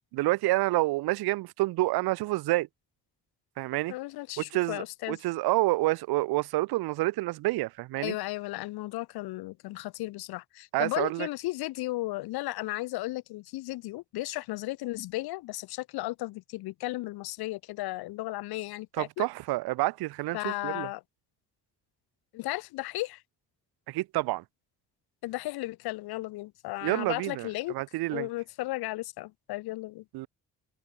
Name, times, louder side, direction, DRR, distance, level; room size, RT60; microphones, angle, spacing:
voice 1, 0.1-2.7 3.6-3.9 4.4-8.1 10.7-11.3 19.0-20.9 23.9-24.4 26.8-28.3 30.1-30.3, right 19 dB, 85° right, 0.7 m, -28 dB
voice 2, 3.9-5.2 8.0-19.3 20.3-21.0 22.3-23.2 25.2-27.7 28.1-30.0, left 19 dB, 85° left, 0.7 m, -35 dB
cardioid pair, 70°, 37 cm